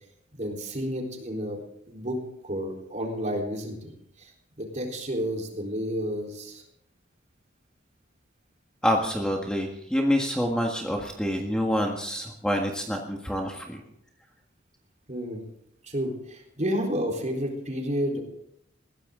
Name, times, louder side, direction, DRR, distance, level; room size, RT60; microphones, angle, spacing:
voice 1, 0.3-1.6 1.9-3.9 4.2-4.3 4.6-6.6 15.1-15.4 15.8-18.2, equal, 40° right, 0 dB, 4.0 m, -31 dB
voice 2, 8.8-13.8, equal, 5° left, 1 dB, 1.6 m, -27 dB
20.5 x 16.0 x 3.9 m, 0.74 s
head